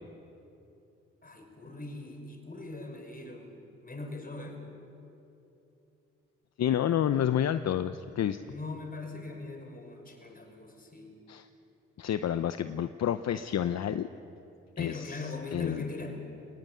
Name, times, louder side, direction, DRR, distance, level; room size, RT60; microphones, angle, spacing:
voice 1, 1.2-4.7 8.4-11.2 14.8-16.2, left 3 dB, 30° left, 3 dB, 5.7 m, -41 dB
voice 2, 6.6-8.4 11.3-11.5 12.0-14.1 14.8-15.8, left 10 dB, 65° left, 11 dB, 0.7 m, -29 dB
19.5 x 19.0 x 9.6 m, 2.8 s
supercardioid pair, 55°, 29 cm